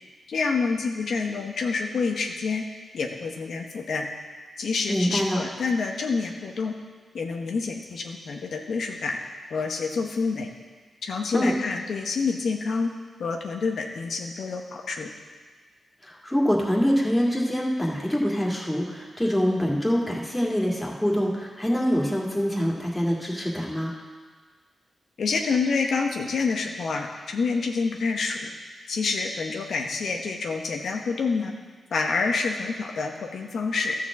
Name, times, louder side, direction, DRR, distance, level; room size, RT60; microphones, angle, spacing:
voice 1, 0.3-2.6 2.9-4.1 4.6-6.7 7.1-9.2 9.5-10.5 11.0-12.9 13.2-15.1 25.2-28.5 28.9-31.5 31.9-34.0, left 4 dB, 75° left, 2 dB, 0.8 m, -27 dB
voice 2, 4.9-5.4 11.3-11.5 16.0-23.9, equal, 10° left, -3 dB, 2.1 m, -25 dB
12.5 x 4.4 x 7.2 m, 1.5 s
cardioid pair, 85°, 0 cm